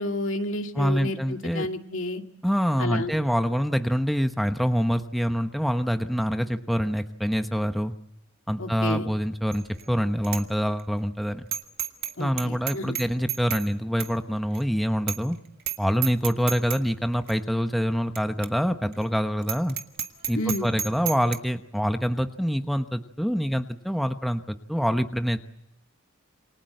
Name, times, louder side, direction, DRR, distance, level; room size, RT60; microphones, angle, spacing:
voice 1, 0.0-2.2 2.8-3.1 8.6-9.1 12.2-13.0 20.3-20.7, left 1 dB, 70° left, 4 dB, 2.4 m, -30 dB
voice 2, 0.7-1.7 2.4-7.9 8.5-11.5 12.2-15.4 15.8-19.8 20.3-25.4, equal, ahead, 7 dB, 1.0 m, -26 dB
Bicycle bell, 9.5-9.9 10.2-10.4 10.8-10.9 11.5-12.1 12.4-13.7 14.0-14.1 14.5-14.6 15.1-15.3 15.6-16.8 17.3-17.4 18.2-18.3 18.4-18.5 18.9-19.0 19.4-21.4, right 10 dB, 50° right, 1.8 m, -31 dB
28.0 x 24.5 x 7.8 m, 0.83 s
head